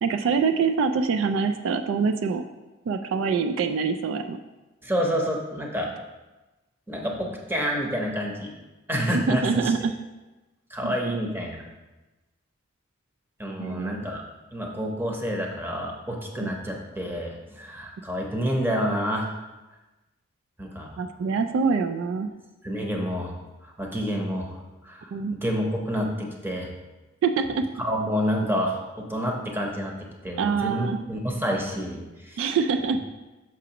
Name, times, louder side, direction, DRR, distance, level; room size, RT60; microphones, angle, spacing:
voice 1, 0.0-2.4 2.9-4.4 9.1-9.9 10.8-10.9 13.6-14.1 16.4-16.5 21.0-22.3 25.1-25.4 27.2-27.6 30.4-31.0 32.4-33.0, right 5 dB, 70° right, 8 dB, 0.3 m, -25 dB
voice 2, 4.8-5.9 6.9-8.5 8.9-9.4 10.7-11.6 13.4-14.2 14.5-19.3 20.6-21.0 22.6-23.4 23.6-24.6 24.8-25.1 25.4-26.7 27.8-29.9 30.2-32.5, equal, 10° right, 0 dB, 0.8 m, -28 dB
5.9 x 5.9 x 2.9 m, 1.1 s
head